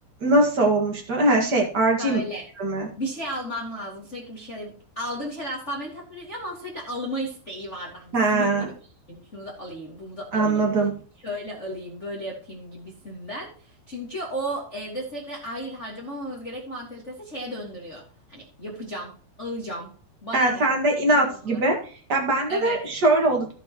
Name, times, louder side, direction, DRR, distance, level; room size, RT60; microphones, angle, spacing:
voice 1, 0.2-2.2 2.6-2.9 8.1-8.7 10.3-10.9 20.3-23.5, right 2 dB, 90° right, 1 dB, 0.9 m, -21 dB
voice 2, 2.0-2.4 3.0-8.7 9.1-10.7 11.2-18.0 18.3-19.1 19.4-19.9 20.2-20.7 21.1-21.6 22.5-22.8, equal, 30° left, -2 dB, 1.4 m, -34 dB
17.0 x 5.8 x 3.0 m, 0.42 s
omnidirectional pair, 5.1 m